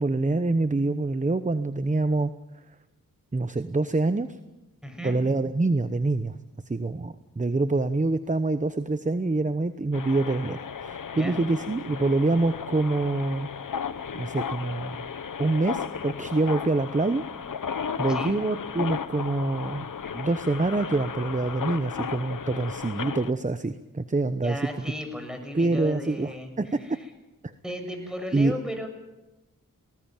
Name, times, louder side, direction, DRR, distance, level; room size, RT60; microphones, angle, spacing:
voice 1, 0.0-2.3 3.3-4.3 5.0-6.3 6.7-13.5 14.1-15.0 15.4-17.2 18.0-19.9 20.1-24.7 25.5-26.9 27.4-27.5 28.3-28.5, right 2 dB, 20° right, 12 dB, 1.0 m, -26 dB
voice 2, 4.8-5.2 11.2-11.4 18.1-18.4 24.4-27.1 27.6-28.9, equal, ahead, 6 dB, 6.9 m, -35 dB
sound 1, 9.9-23.3, left 6 dB, 65° left, 1.2 m, -35 dB
19.5 x 19.0 x 9.1 m, 1.0 s
cardioid pair, 50°, 34 cm